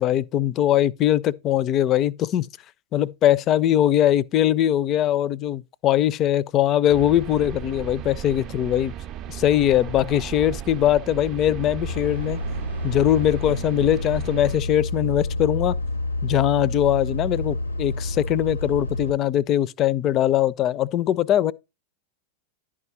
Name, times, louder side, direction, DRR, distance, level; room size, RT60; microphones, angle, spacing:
voice 1, 0.0-2.5 2.9-8.9 9.3-12.4 12.8-15.8 16.2-21.5, left 12 dB, 35° left, 0.4 m, -21 dB
sound 1, 6.9-14.6, right 10 dB, 35° right, 0.4 m, -36 dB
sound 2, 11.8-19.1, left 2 dB, 80° left, 0.6 m, -29 dB
11.0 x 4.9 x 3.9 m
figure-of-eight pair, 90°, 0 cm